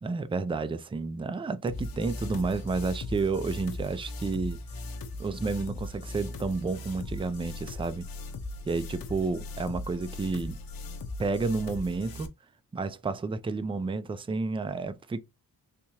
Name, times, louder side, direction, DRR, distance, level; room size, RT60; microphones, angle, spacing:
voice 1, 0.0-4.6 5.2-8.1 8.6-10.6 11.2-12.3 12.7-15.2, right 4 dB, 15° right, 0.3 m, -31 dB
sound 1, 1.7-12.3, left 2 dB, 75° left, 0.7 m, -38 dB
3.4 x 2.8 x 2.8 m
wide cardioid pair, 105°, 36 cm